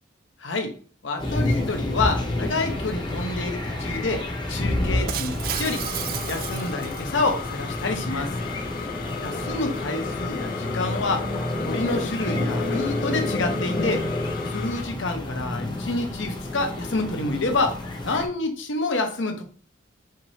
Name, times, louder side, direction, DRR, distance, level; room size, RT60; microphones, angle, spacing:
voice 1, 0.4-0.7 1.0-5.8 6.3-8.3 9.2-11.3 11.6-14.1 14.5-17.8 18.0-19.4, left 3 dB, 70° left, 5 dB, 0.9 m, -28 dB
sound 1, 1.2-18.3, left 1 dB, 25° left, 0.7 m, -29 dB
Shatter, 5.1-7.5, right 11 dB, 50° right, 0.3 m, -33 dB
sound 2, 5.5-14.8, left 6 dB, 45° left, 0.4 m, -38 dB
5.7 x 3.4 x 2.8 m, 0.43 s
head